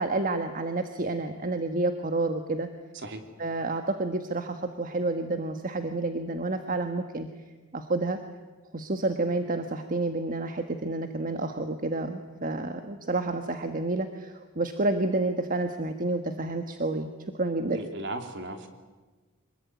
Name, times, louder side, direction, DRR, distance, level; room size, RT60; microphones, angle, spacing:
voice 1, 0.0-2.7 3.4-7.3 7.7-8.2 8.7-17.1 17.4-17.8, right 2 dB, 40° right, 7 dB, 1.4 m, -29 dB
voice 2, 17.7-18.7, right 2 dB, 55° right, 5 dB, 3.3 m, -36 dB
25.5 x 21.5 x 9.6 m, 1.3 s
head